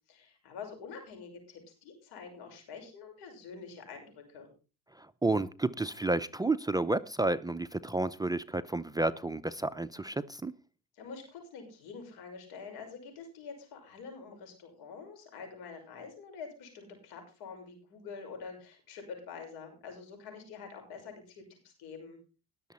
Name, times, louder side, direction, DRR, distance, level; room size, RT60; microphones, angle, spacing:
voice 1, 0.1-4.5 11.0-22.2, left 5 dB, 80° left, 5.9 m, -46 dB
voice 2, 5.0-10.5, right 2 dB, 10° right, 0.6 m, -31 dB
19.5 x 7.1 x 4.2 m
supercardioid pair, 85°, 38 cm